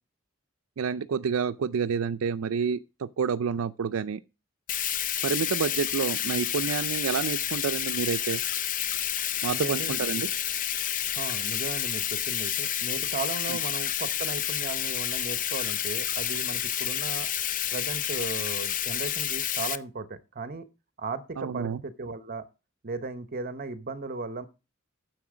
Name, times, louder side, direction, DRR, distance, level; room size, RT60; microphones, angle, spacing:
voice 1, 0.8-4.2 5.2-8.4 9.4-10.3 13.5-13.6 21.4-21.8, right 6 dB, 85° right, 0.4 m, -29 dB
Bathtub (filling or washing), 4.7-19.8, left 11 dB, 40° left, 0.5 m, -30 dB
voice 2, 9.5-10.0 11.1-17.3 17.7-20.7 21.0-22.4 22.8-24.5, right 3 dB, 45° right, 0.8 m, -36 dB
10.0 x 6.7 x 4.9 m
head